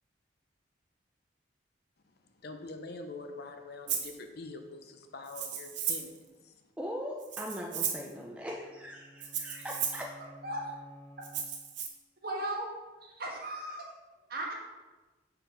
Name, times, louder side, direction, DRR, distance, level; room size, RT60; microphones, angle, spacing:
voice 1, 2.0-6.6, left 3 dB, 55° left, 5 dB, 0.7 m, -45 dB
Rattle (instrument), 3.9-4.1 5.3-6.2 7.2-8.1 9.2-10.1 11.2-11.9, right 8 dB, 70° right, 0.9 m, -35 dB
voice 2, 6.8-10.1, equal, 5° right, -2 dB, 0.5 m, -40 dB
sound 1, 8.4-11.9, equal, 25° right, 1.9 m, -54 dB
voice 3, 10.4-10.7 12.2-12.7 13.2-13.9 14.3-14.5, right 1 dB, 55° right, -2 dB, 1.5 m, -36 dB
6.7 x 4.7 x 5.1 m, 1.2 s
head